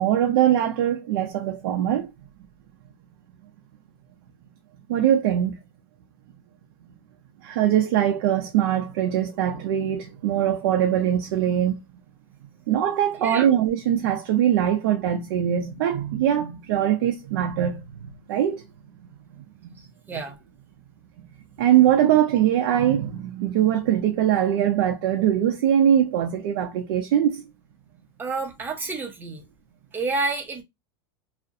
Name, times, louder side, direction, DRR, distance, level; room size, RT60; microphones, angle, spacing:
voice 1, 0.0-2.1 4.9-5.5 7.4-11.8 12.7-18.6 19.4-19.8 21.6-27.4, right 10 dB, 75° right, 0.5 m, -22 dB
voice 2, 20.1-20.4 28.2-29.4 29.9-30.6, right 3 dB, 15° right, 0.6 m, -29 dB
2.4 x 2.0 x 2.6 m
supercardioid pair, 145°, 12 cm